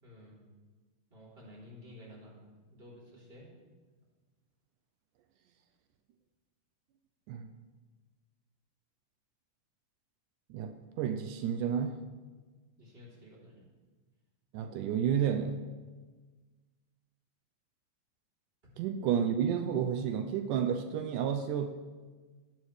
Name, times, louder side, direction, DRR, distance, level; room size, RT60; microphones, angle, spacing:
voice 1, 0.0-0.4 1.1-2.4 2.7-3.5 12.8-13.6 18.6-18.7, left 1 dB, 20° right, -5 dB, 3.3 m, -52 dB
voice 2, 10.5-12.0 14.5-15.6 18.8-21.7, right 8 dB, 85° right, 6 dB, 2.1 m, -31 dB
17.0 x 11.5 x 3.2 m, 1.4 s
omnidirectional pair, 3.7 m